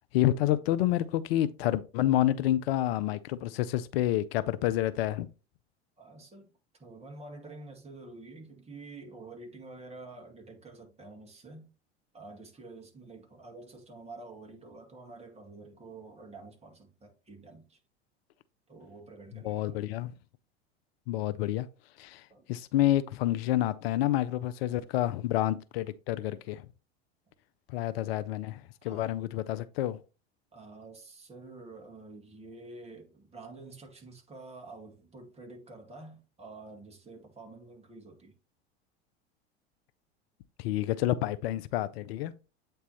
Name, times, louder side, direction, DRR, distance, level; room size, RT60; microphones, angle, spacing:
voice 1, 0.1-5.3 19.4-20.1 21.1-21.7 22.0-22.2 22.5-26.6 27.7-30.0 40.6-42.3, left 13 dB, 65° left, 0.6 m, -28 dB
voice 2, 6.0-11.7 12.1-17.8 18.7-19.8 22.3-22.4 24.8-24.9 28.8-29.1 30.5-38.4, right 3 dB, 20° right, 2.2 m, -48 dB
8.3 x 3.4 x 4.2 m
hypercardioid pair, 85°, 32 cm